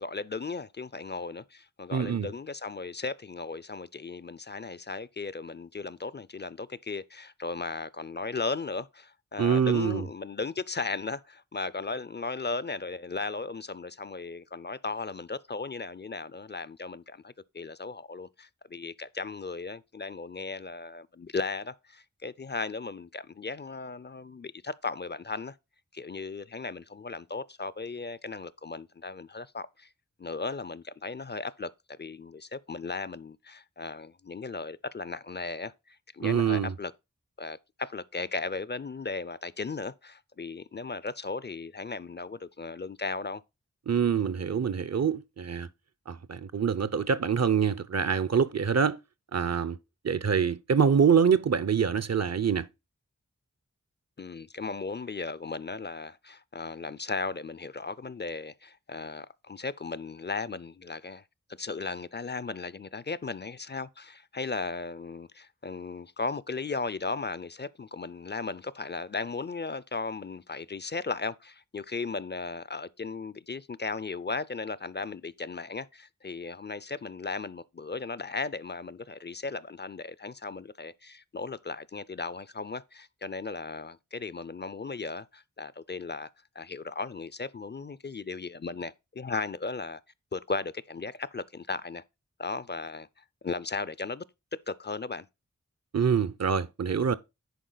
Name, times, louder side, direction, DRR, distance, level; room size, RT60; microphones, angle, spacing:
voice 1, 0.0-25.6 25.9-29.9 30.2-31.7 32.0-36.9 37.4-43.4 54.2-61.2 61.6-86.3 86.6-90.0 90.3-92.0 92.4-94.2 94.7-95.3, left 4 dB, 35° left, 0.4 m, -36 dB
voice 2, 1.9-2.3 9.4-10.1 36.2-36.7 43.9-45.7 46.1-49.0 49.3-49.8 50.0-52.7 95.9-97.1, right 7 dB, 60° right, 0.6 m, -25 dB
10.5 x 4.5 x 3.9 m
wide cardioid pair, 55°, 30 cm